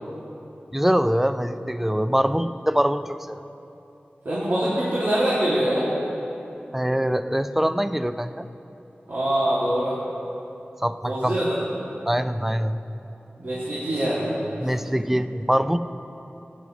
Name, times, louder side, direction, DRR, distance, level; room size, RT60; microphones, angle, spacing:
voice 1, 0.7-3.4 6.7-8.5 10.8-11.4 12.1-12.8 14.6-15.8, equal, 5° right, 11 dB, 0.4 m, -23 dB
voice 2, 4.2-5.9 9.1-10.0 11.0-11.6 13.4-14.4 14.6-14.7, right 1 dB, 80° right, -10 dB, 2.3 m, -24 dB
18.0 x 9.5 x 3.1 m, 3.0 s
wide cardioid pair, 65°, 4 cm